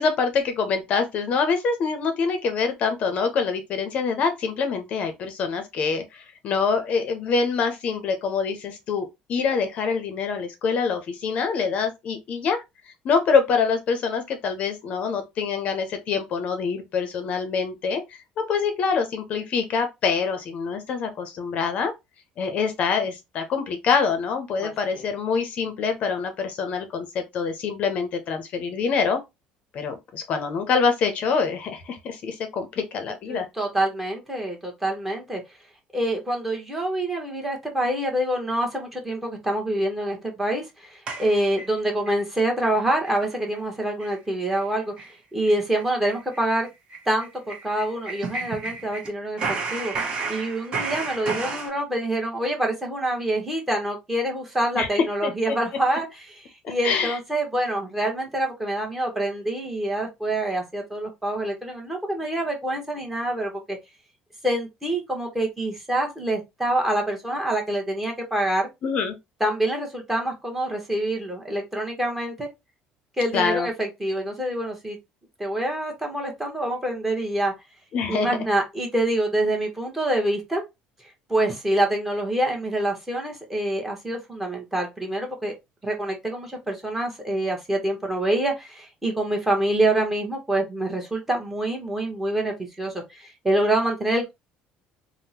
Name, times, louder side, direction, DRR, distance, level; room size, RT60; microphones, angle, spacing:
voice 1, 0.0-12.6 13.0-21.9 22.4-29.2 29.7-33.5 54.8-54.9 55.2-55.6 56.6-57.1 68.8-69.1 73.3-73.7 77.9-78.4, left 5 dB, 45° left, 0.6 m, -25 dB
voice 2, 24.6-25.0 33.3-35.4 35.9-46.7 47.1-49.9 50.3-63.8 64.4-68.7 69.4-72.5 73.2-75.0 75.4-77.5 78.1-80.6 81.3-85.5 85.8-94.3, right 1 dB, 10° right, 1.0 m, -26 dB
sound 1, 41.1-42.2 42.6-42.7 43.0-43.3 43.5-43.6 44.0-44.2 44.5-44.7 45.0-45.1 45.4-49.1 49.4-51.7, right 4 dB, 35° right, 0.9 m, -32 dB
3.5 x 2.1 x 2.7 m
cardioid pair, 140°, 3 cm